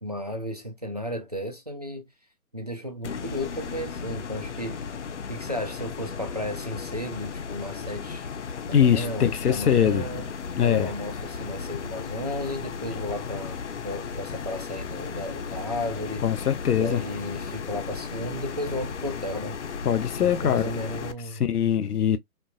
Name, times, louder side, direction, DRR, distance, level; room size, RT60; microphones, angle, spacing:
voice 1, 0.0-2.1 2.5-4.8 5.3-8.3 8.7-10.3 10.6-16.2 16.8-19.6 20.2-21.7, left 1 dB, 30° right, 0.4 m, -34 dB
sound 1, 3.0-21.1, left 5 dB, 55° left, 0.5 m, -35 dB
voice 2, 8.7-10.1 10.6-10.9 16.2-17.0 19.8-20.6 21.4-22.2, left 9 dB, 90° left, 0.7 m, -22 dB
4.4 x 2.0 x 2.3 m
hypercardioid pair, 155°, 44 cm